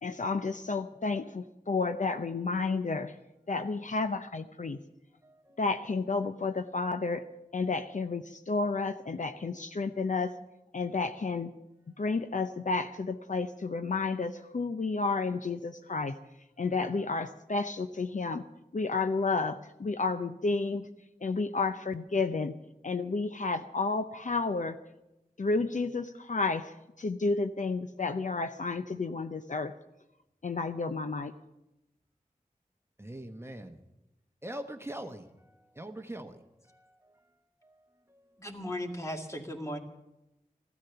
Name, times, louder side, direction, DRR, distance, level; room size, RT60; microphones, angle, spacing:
voice 1, 0.0-3.1 3.5-4.8 5.6-7.3 7.5-10.3 10.7-11.5 12.0-16.2 16.6-18.5 18.7-20.9 21.2-22.5 22.8-24.8 25.4-29.7 30.4-31.3, left 3 dB, 55° left, 0.7 m, -31 dB
voice 2, 5.2-5.6 33.0-33.8 34.4-37.2 37.6-38.5, right 1 dB, 15° right, 1.0 m, -44 dB
voice 3, 38.4-39.8, left 1 dB, 20° left, 2.1 m, -36 dB
15.0 x 12.5 x 6.8 m
wide cardioid pair, 75°, 15 cm